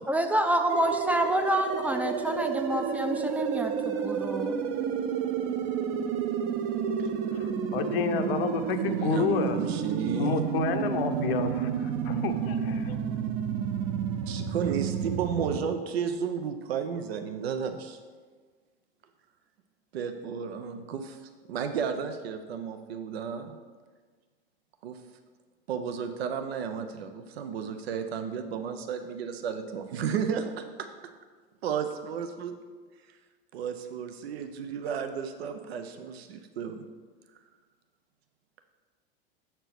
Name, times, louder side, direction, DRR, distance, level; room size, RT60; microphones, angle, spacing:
voice 1, 0.1-4.6, right 1 dB, 5° right, 6 dB, 0.4 m, -28 dB
sound 1, 0.7-15.6, right 7 dB, 45° right, 0.7 m, -30 dB
voice 2, 7.7-13.0, left 6 dB, 70° left, 7 dB, 0.8 m, -30 dB
voice 3, 8.8-10.5 14.3-18.0 19.9-21.2 21.5-23.6 24.8-25.0 25.7-30.6 31.6-32.5 33.5-36.9, right 7 dB, 80° right, 7 dB, 0.7 m, -33 dB
6.9 x 4.5 x 5.9 m, 1.5 s
hypercardioid pair, 105°, 30 cm